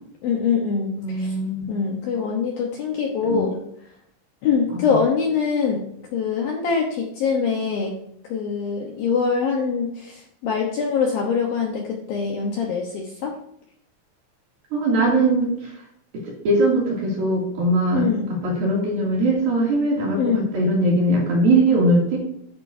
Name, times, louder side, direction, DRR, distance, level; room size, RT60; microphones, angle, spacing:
voice 1, 0.2-1.3 1.7-3.6 4.4-5.9 6.1-7.9 8.3-13.3 17.9-18.3 20.2-20.5, left 5 dB, 75° left, 0 dB, 2.1 m, -23 dB
voice 2, 1.0-1.8 3.3-3.4 4.7-5.0 14.7-15.7 16.1-18.0 18.3-22.2, right 1 dB, 50° right, -4 dB, 4.0 m, -21 dB
12.5 x 9.9 x 2.8 m, 0.72 s
omnidirectional pair, 6.0 m